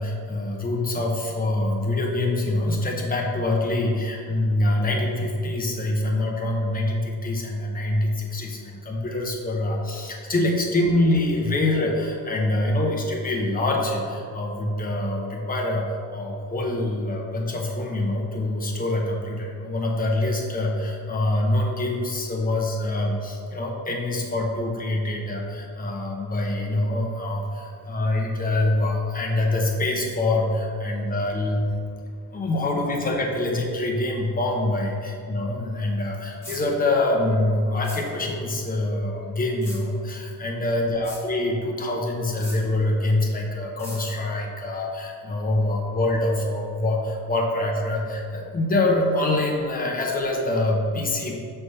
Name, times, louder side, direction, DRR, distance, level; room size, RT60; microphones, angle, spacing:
voice 1, 0.0-15.9 16.1-31.7 32.3-51.4, left 2 dB, 25° left, -1 dB, 0.9 m, -25 dB
sound 1, 36.4-36.6 37.8-38.0 39.6-39.8 41.0-41.2 42.4-42.6 43.8-44.0, left 1 dB, 5° left, 1.5 m, -38 dB
6.2 x 3.4 x 5.5 m, 2.4 s
cardioid pair, 145°, 36 cm